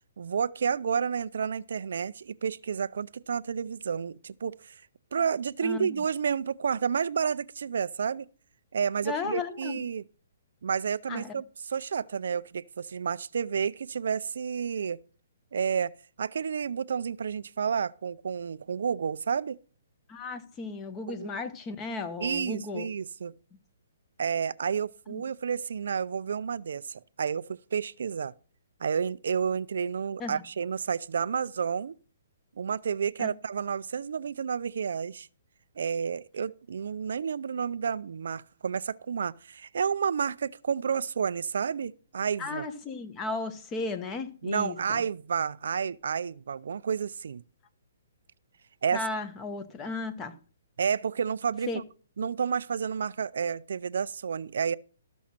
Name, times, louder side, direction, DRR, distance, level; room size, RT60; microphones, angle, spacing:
voice 1, 0.2-4.7 5.1-8.2 8.7-10.0 10.6-15.0 15.5-15.9 16.2-19.6 21.1-21.3 22.2-23.3 24.2-28.3 28.8-31.9 32.6-35.3 35.8-42.7 44.4-47.4 48.8-49.1 50.8-51.8 52.2-54.8, right 6 dB, 70° right, 0.4 m, -30 dB
voice 2, 5.6-6.0 9.0-9.8 11.1-11.3 20.1-22.8 25.1-25.2 30.2-30.4 33.2-33.3 42.4-45.0 48.9-50.3 51.7-51.8, left 3 dB, 20° left, 1.2 m, -35 dB
13.0 x 6.2 x 5.8 m
hypercardioid pair, 155°, 0 cm